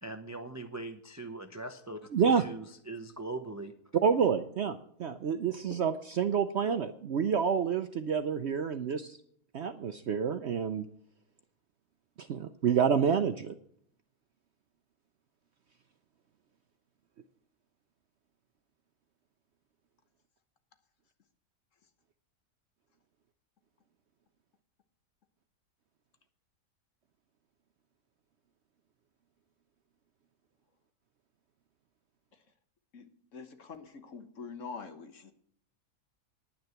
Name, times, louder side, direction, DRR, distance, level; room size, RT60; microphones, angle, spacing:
voice 1, 0.0-3.7, right 2 dB, 25° right, 7 dB, 0.4 m, -41 dB
voice 2, 2.1-2.5 3.9-9.2 9.5-10.9 12.2-13.5, right 7 dB, 60° right, 10 dB, 0.7 m, -28 dB
voice 3, 33.3-35.3, left 5 dB, 55° left, 8 dB, 1.5 m, -44 dB
10.0 x 9.5 x 5.8 m, 0.66 s
omnidirectional pair, 1.7 m